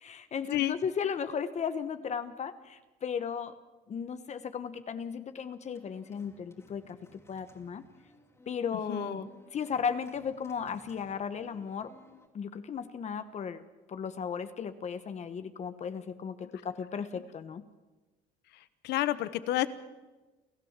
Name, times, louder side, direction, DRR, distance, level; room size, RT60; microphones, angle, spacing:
voice 1, 0.0-3.5 3.9-7.8 8.5-11.9 12.3-13.6 13.9-17.6, left 7 dB, 40° left, 11 dB, 1.2 m, -35 dB
Organ, 5.7-12.3, left 1 dB, 15° left, 2.9 m, -60 dB
voice 2, 8.9-9.2 18.5-19.7, left 15 dB, 80° left, 15 dB, 1.1 m, -30 dB
29.0 x 14.5 x 7.4 m, 1.2 s
cardioid pair, 110°, 17 cm